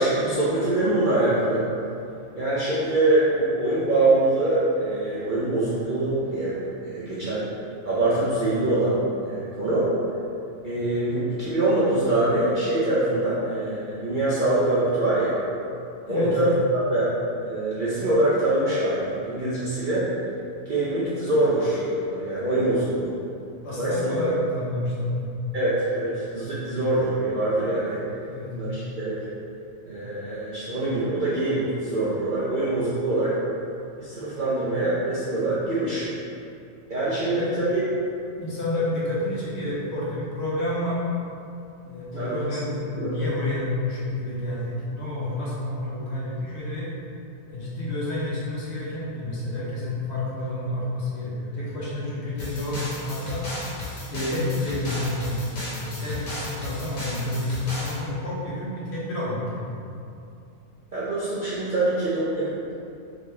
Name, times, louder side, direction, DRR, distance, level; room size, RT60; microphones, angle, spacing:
voice 1, 0.0-1.7 2.3-7.4 7.8-9.9 10.6-15.4 16.1-17.1 17.4-20.1 20.7-23.2 23.8-24.1 25.5-28.0 28.5-29.3 29.9-33.4 34.0-36.1 36.9-37.8 42.2-42.4 42.9-43.2 60.9-62.7, right 2 dB, 45° right, -11 dB, 0.7 m, -24 dB
voice 2, 23.6-25.3 28.3-28.5 37.2-37.5 38.3-41.0 41.8-46.9 47.5-53.5 54.1-59.7, left 1 dB, 55° left, -8 dB, 1.2 m, -29 dB
sound 1, 52.4-58.0, left 1 dB, 90° left, 1.5 m, -35 dB
3.8 x 3.2 x 3.3 m, 2.6 s
omnidirectional pair, 1.4 m